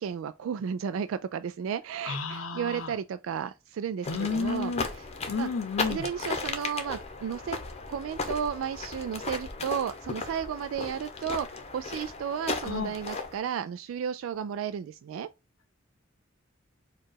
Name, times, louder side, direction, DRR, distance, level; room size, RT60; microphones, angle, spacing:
voice 1, 0.0-5.1 5.4-5.5 5.9-7.6 7.9-15.3, right 7 dB, 70° right, 0.3 m, -33 dB
voice 2, 2.1-2.9 4.1-4.9 5.3-6.1 12.6-12.9, left 4 dB, 75° left, 0.7 m, -31 dB
sound 1, 4.0-13.4, left 4 dB, 30° left, 0.8 m, -36 dB
4.6 x 2.4 x 4.5 m
head